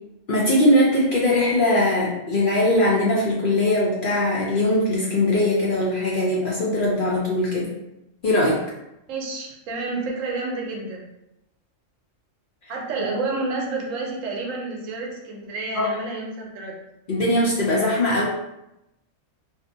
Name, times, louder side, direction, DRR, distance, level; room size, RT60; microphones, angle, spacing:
voice 1, 0.3-7.7 8.2-8.6 15.7-15.8 17.1-18.3, left 1 dB, 60° left, -5 dB, 0.5 m, -20 dB
voice 2, 9.1-11.0 12.7-16.8, right 3 dB, 80° right, -1 dB, 1.0 m, -29 dB
2.5 x 2.0 x 2.6 m, 0.89 s
omnidirectional pair, 1.3 m